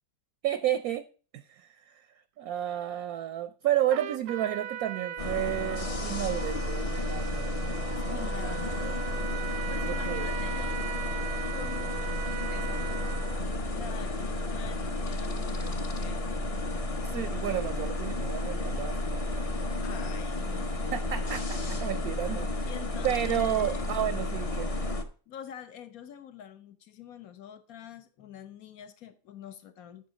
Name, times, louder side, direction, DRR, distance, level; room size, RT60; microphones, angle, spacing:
voice 1, 0.4-1.0 1.3-2.0 2.4-8.3 8.8-8.9 9.7-9.8 10.1-10.3 17.0-19.4 20.9-22.7 23.0-24.7, right 12 dB, 65° right, 1.0 m, -32 dB
Trumpet, 3.9-13.5, right 9 dB, 85° right, 1.3 m, -39 dB
sound 1, 5.2-25.0, left 2 dB, 25° left, 0.8 m, -32 dB
voice 2, 8.1-13.2 13.7-16.4 19.8-21.2 22.7-23.9 25.3-30.1, left 9 dB, 60° left, 1.3 m, -46 dB
sound 2, 12.1-23.9, left 11 dB, 85° left, 1.9 m, -54 dB
8.1 x 7.3 x 6.3 m
omnidirectional pair, 1.9 m